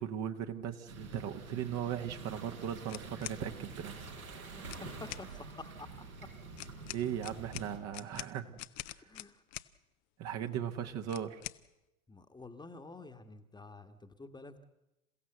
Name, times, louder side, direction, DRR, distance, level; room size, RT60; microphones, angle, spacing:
voice 1, 0.0-4.1 6.9-8.6 8.9-9.0 10.2-11.4, right 9 dB, 40° right, 6 dB, 1.5 m, -38 dB
sound 1, 0.9-7.8, right 4 dB, 85° right, 4.9 m, -47 dB
sound 2, 2.9-3.4 4.6-5.3 6.6-9.7 11.1-11.6, left 19 dB, 40° left, 0.8 m, -45 dB
voice 2, 4.3-6.3 9.0-9.4 10.8-10.9 12.1-14.6, left 3 dB, 10° left, 7 dB, 1.5 m, -50 dB
28.0 x 16.0 x 7.9 m, 0.96 s
figure-of-eight pair, 85°, 42 cm